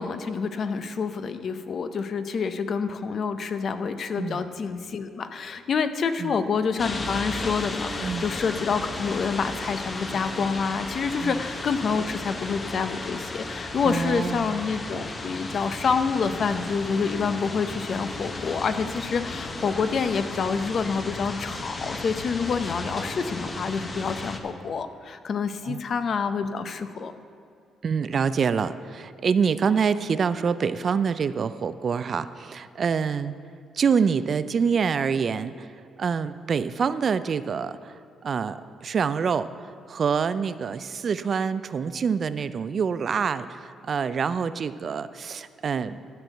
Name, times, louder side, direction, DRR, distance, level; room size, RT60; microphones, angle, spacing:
voice 1, 0.0-27.1, left 5 dB, 55° left, 10 dB, 0.6 m, -27 dB
sound 1, 6.8-24.4, left 2 dB, 30° left, 0.9 m, -34 dB
voice 2, 13.8-14.5 25.6-25.8 27.8-33.3 33.7-35.7 36.0-39.5 39.9-46.0, right 6 dB, 50° right, 14 dB, 0.4 m, -26 dB
12.5 x 4.6 x 7.8 m, 2.4 s
cardioid pair, 90°, 0 cm